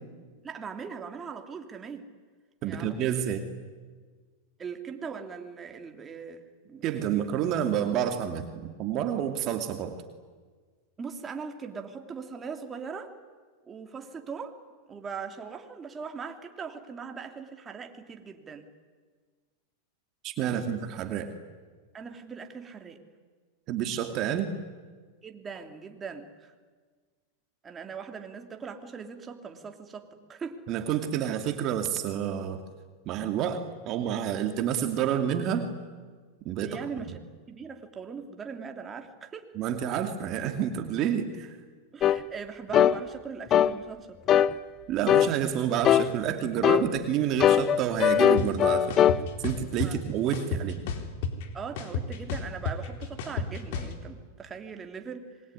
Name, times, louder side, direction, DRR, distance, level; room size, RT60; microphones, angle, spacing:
voice 1, 0.4-2.1 2.6-3.1 4.6-7.3 11.0-13.1 13.6-14.6 14.9-18.7 20.4-20.9 21.9-23.0 25.2-26.5 27.6-30.6 36.6-37.2 37.5-39.5 39.9-40.0 41.9-44.2 49.8-50.0 51.5-55.4, right 6 dB, 20° right, 5 dB, 3.0 m, -40 dB
voice 2, 2.6-3.4 6.8-10.0 20.2-21.3 23.7-24.5 30.7-32.6 33.1-35.7 36.4-36.8 39.6-41.6 44.9-49.0 49.4-50.8, right 9 dB, 40° right, 6 dB, 2.5 m, -29 dB
sound 1, 42.0-42.2 42.7-43.0 43.5-43.7 44.3-44.5 45.1-45.3 45.8-46.1 46.6-46.9 47.4-49.2, left 10 dB, 35° left, 0.8 m, -20 dB
sound 2, 48.4-48.5 48.9-49.9 50.3-51.4 51.8-53.9, left 6 dB, 65° left, 3.9 m, -31 dB
26.5 x 22.0 x 9.9 m, 1.5 s
supercardioid pair, 125°, 0 cm